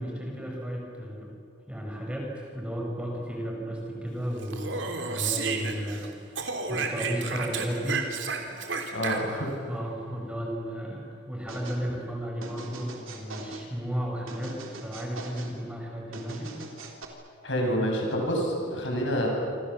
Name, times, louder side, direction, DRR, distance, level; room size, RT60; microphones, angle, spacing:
voice 1, 0.0-1.3 1.7-8.1 8.5-8.9 9.7-16.5 16.9-17.0, equal, 5° right, -1 dB, 5.0 m, -34 dB
Speech, 4.4-6.1 6.4-9.5, right 4 dB, 65° right, 3.2 m, -32 dB
voice 2, 8.9-9.5 17.4-19.3, equal, 65° left, 0 dB, 7.7 m, -27 dB
sound 1, 11.5-11.8 12.4-13.7 14.3-15.5 16.1-17.1, right 3 dB, 85° right, 3.7 m, -43 dB
27.5 x 27.0 x 7.3 m, 2.3 s
head